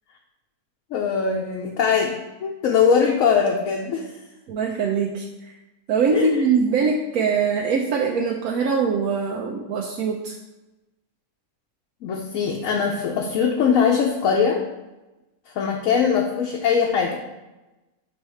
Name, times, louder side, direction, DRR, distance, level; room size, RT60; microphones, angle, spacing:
voice 1, 0.9-4.1 6.1-6.5 12.0-14.6 15.5-17.3, left 6 dB, 70° left, 0 dB, 1.0 m, -21 dB
voice 2, 4.5-5.2 5.9-10.3, right 5 dB, 75° right, -1 dB, 1.0 m, -22 dB
6.3 x 3.5 x 4.4 m, 1.0 s
omnidirectional pair, 1.6 m